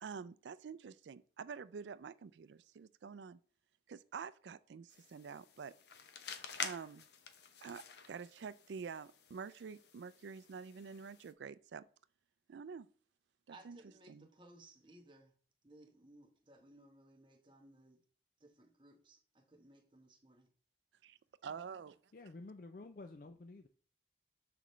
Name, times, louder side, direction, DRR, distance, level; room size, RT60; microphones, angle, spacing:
voice 1, 0.0-3.4 3.9-5.7 6.6-7.1 7.6-11.9 12.5-12.9 13.5-13.8 14.1-14.3 21.0-22.0, right 6 dB, 90° right, 0.4 m, -48 dB
sound 1, 4.9-11.3, left 6 dB, 75° left, 0.8 m, -49 dB
voice 2, 13.5-15.3 15.6-18.0 18.4-20.5, right 2 dB, 25° right, 1.1 m, -61 dB
voice 3, 22.1-23.7, left 2 dB, 50° left, 0.4 m, -51 dB
6.8 x 6.0 x 3.1 m
head